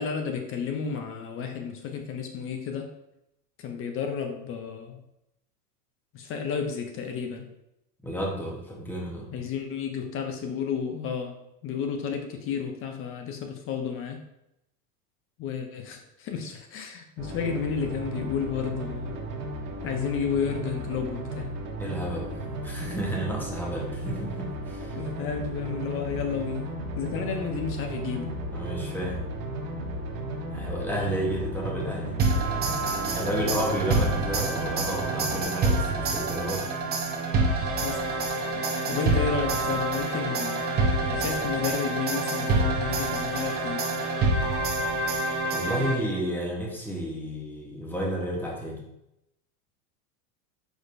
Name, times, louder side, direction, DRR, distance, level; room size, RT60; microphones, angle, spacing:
voice 1, 0.0-2.9 3.6-5.0 6.1-7.5 9.3-11.4 11.6-14.2 15.4-19.2 19.8-21.5 24.9-26.7 26.9-28.4 37.8-38.0 38.9-43.9, left 6 dB, 30° left, 4 dB, 0.5 m, -32 dB
voice 2, 8.0-9.4 21.8-25.0 27.3-27.4 28.5-29.2 30.5-32.2 32.8-36.7 45.5-48.8, equal, 5° left, -2 dB, 1.0 m, -32 dB
sound 1, 17.2-35.4, right 1 dB, 45° right, 1.4 m, -35 dB
sound 2, 32.2-46.3, right 2 dB, 20° right, 0.7 m, -27 dB
4.9 x 4.2 x 2.6 m, 0.84 s
supercardioid pair, 120°, 47 cm